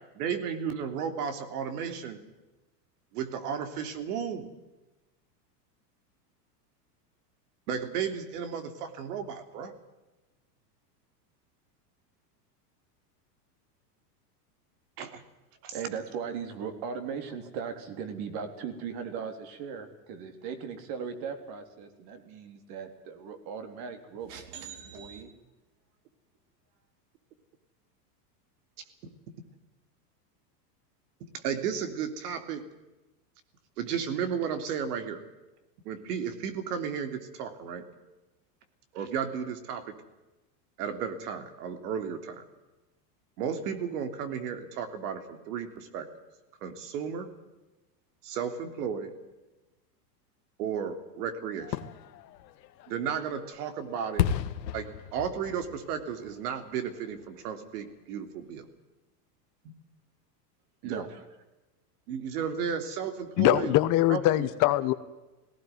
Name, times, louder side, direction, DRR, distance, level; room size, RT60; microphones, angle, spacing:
voice 1, 0.1-2.2 3.1-4.5 7.7-9.7 15.0-15.2 15.6-15.8 31.4-32.6 33.8-35.2 35.8-37.9 38.9-39.9 40.8-42.4 43.4-46.1 46.6-47.3 48.2-49.1 50.6-51.8 52.9-54.3 54.7-58.6 59.6-59.7 60.8-61.0 62.1-63.7 64.1-64.5, right 7 dB, 70° right, 9 dB, 3.3 m, -34 dB
voice 2, 15.7-25.3 60.8-61.2, right 6 dB, 45° right, 8 dB, 3.7 m, -38 dB
Fireworks, 51.6-57.4 57.8-57.9, left 10 dB, 90° left, 1.8 m, -35 dB
voice 3, 63.4-64.9, left 16 dB, 40° left, 12 dB, 1.3 m, -23 dB
18.0 x 18.0 x 9.4 m, 1.1 s
supercardioid pair, 140°, 49 cm